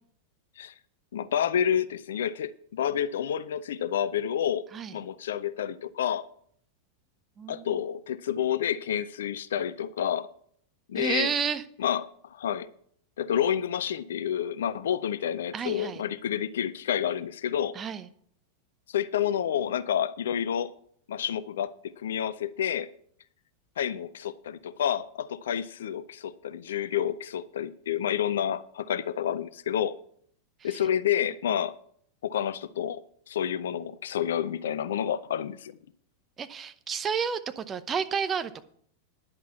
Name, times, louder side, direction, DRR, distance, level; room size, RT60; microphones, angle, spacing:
voice 1, 1.1-4.7 4.9-6.3 7.5-10.3 10.9-11.3 11.8-12.7 13.2-17.8 18.9-20.7 21.1-22.9 23.8-29.9 30.6-31.7 32.2-35.8, left 9 dB, 60° left, 0.5 m, -29 dB
voice 2, 7.4-7.8 11.0-11.6 15.5-16.0 17.7-18.1 30.6-30.8 36.4-38.6, right 7 dB, 25° right, 0.8 m, -31 dB
10.5 x 5.9 x 8.1 m
figure-of-eight pair, 90°, 0 cm